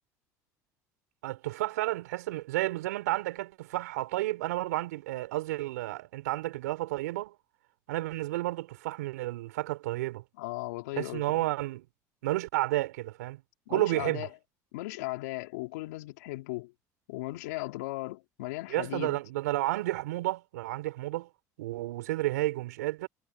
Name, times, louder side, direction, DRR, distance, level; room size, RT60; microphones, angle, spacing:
voice 1, 1.2-7.3 7.9-10.2 11.0-11.8 12.2-13.4 13.7-14.3 18.7-21.3 21.6-23.1, right 17 dB, 85° right, 4.9 m, -31 dB
voice 2, 10.4-11.5 13.7-14.3 14.7-16.7 17.1-19.2, left 21 dB, 80° left, 3.5 m, -37 dB
hypercardioid pair, 70°, 9 cm